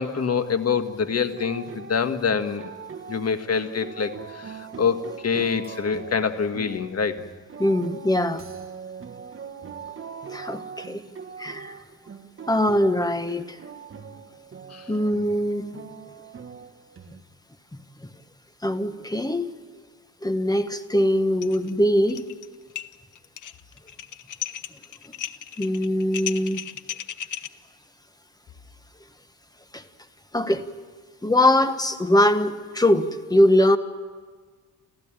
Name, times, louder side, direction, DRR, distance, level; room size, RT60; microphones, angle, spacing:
voice 1, 0.0-2.7 3.1-7.2 14.7-14.9, left 6 dB, 45° left, 8 dB, 1.6 m, -26 dB
sound 1, 1.3-17.2, right 6 dB, 40° right, 1.4 m, -41 dB
voice 2, 7.6-8.4 10.3-11.0 11.4-11.8 12.5-13.6 14.9-15.8 18.6-19.5 20.2-22.2 25.6-26.6 29.7-29.8 30.3-30.6 31.2-33.8, left 1 dB, 10° left, 10 dB, 1.3 m, -22 dB
sound 2, 21.4-21.7 22.0-22.5 22.7-27.5, left 10 dB, 65° left, 1.0 m, -35 dB
29.5 x 15.0 x 9.0 m, 1.5 s
cardioid pair, 95°, 34 cm